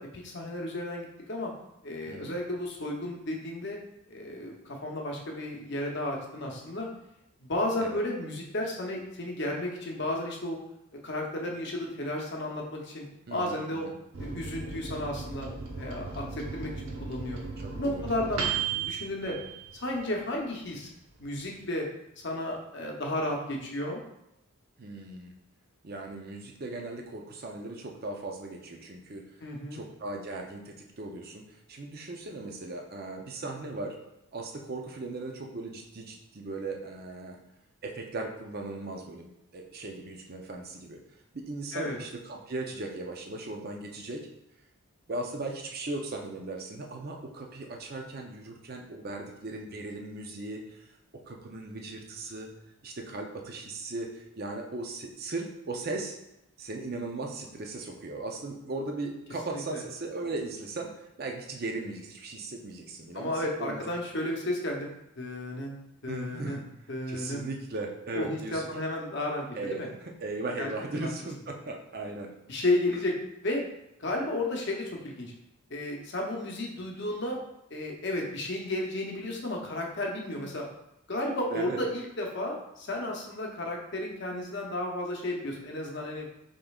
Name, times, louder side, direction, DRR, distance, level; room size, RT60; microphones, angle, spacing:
voice 1, 0.0-1.5 1.8-3.8 4.1-6.9 7.4-10.6 11.0-13.1 13.3-13.9 14.2-15.5 15.8-17.4 17.7-19.4 19.7-20.9 21.2-21.9 22.2-24.0 29.4-29.8 41.7-42.0 59.5-59.8 63.1-64.9 65.2-65.8 66.0-66.6 66.9-67.4 68.1-69.9 70.6-70.7 71.0-71.1 72.5-73.2 73.4-73.6 74.0-75.3 75.7-77.4 77.7-80.7 81.1-86.3, left 1 dB, 50° left, 0 dB, 0.8 m, -33 dB
voice 2, 13.3-14.0 17.6-18.0 24.8-25.3 25.8-29.3 29.7-34.0 34.3-37.4 37.8-41.0 41.3-44.3 45.1-50.8 51.1-52.5 52.8-56.2 56.6-63.8 66.1-66.6 67.1-68.7 69.5-72.3 72.9-73.0 81.5-81.8, right 2 dB, 45° right, 2 dB, 0.6 m, -38 dB
Microwave oven, 14.1-20.2 20.6-20.7 21.0-21.6, right 6 dB, 85° right, 0.8 m, -36 dB
5.2 x 3.7 x 2.3 m, 0.84 s
head